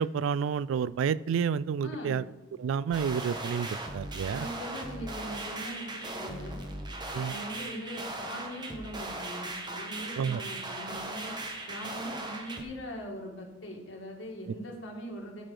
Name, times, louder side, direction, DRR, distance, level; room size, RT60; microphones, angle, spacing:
voice 1, 0.0-2.2 2.6-4.5 7.1-7.3 10.2-10.4, right 7 dB, 85° right, 19 dB, 0.3 m, -30 dB
voice 2, 1.8-2.2 4.3-6.6 7.1-11.4 11.7-15.5, equal, 75° left, 0 dB, 1.9 m, -41 dB
sound 1, 2.9-12.6, right 2 dB, 20° right, 0.9 m, -38 dB
13.0 x 4.9 x 3.9 m, 1.0 s
head